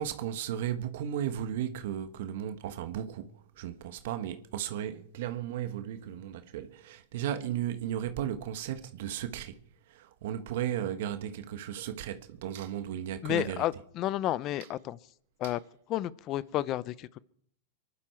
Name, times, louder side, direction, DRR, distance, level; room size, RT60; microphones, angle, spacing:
voice 1, 0.0-3.3 3.6-9.5 9.9-13.6, right 10 dB, 70° right, 1.3 m, -35 dB
voice 2, 13.2-15.0 15.4-15.6 15.9-17.2, left 14 dB, 40° left, 0.7 m, -31 dB
24.5 x 11.5 x 4.6 m
hypercardioid pair, 115°, 0 cm